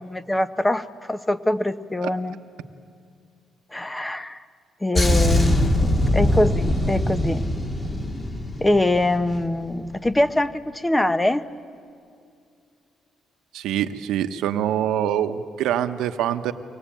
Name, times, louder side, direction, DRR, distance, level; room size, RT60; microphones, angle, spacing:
voice 1, 0.0-2.4 3.7-4.4 4.8-7.4 8.6-11.4, left 1 dB, 15° left, 12 dB, 0.9 m, -23 dB
sound 1, 5.0-9.5 9.8-10.1, left 1 dB, 30° left, 2.6 m, -22 dB
voice 2, 13.5-16.5, right 10 dB, 90° right, 9 dB, 1.0 m, -24 dB
24.0 x 20.0 x 8.9 m, 2.4 s
cardioid pair, 90°, 0 cm